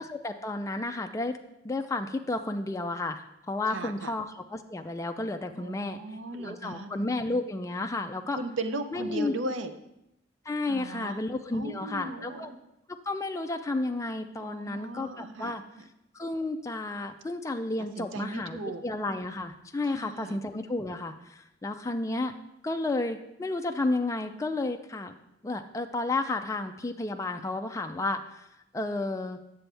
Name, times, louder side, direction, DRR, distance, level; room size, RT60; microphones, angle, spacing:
voice 1, 0.0-1.4 1.6-6.0 6.4-8.4 8.9-9.3 10.5-12.5 13.1-15.6 16.1-22.3 22.6-25.1 25.4-28.5 28.7-29.4, left 2 dB, 15° left, 6 dB, 0.4 m, -32 dB
voice 2, 3.7-4.1 5.6-6.9 8.3-9.7 10.7-11.2 11.5-12.6 14.4-15.8 18.0-18.8 19.8-20.4, right 2 dB, 75° right, 8 dB, 0.6 m, -37 dB
8.9 x 7.0 x 3.3 m, 0.85 s
head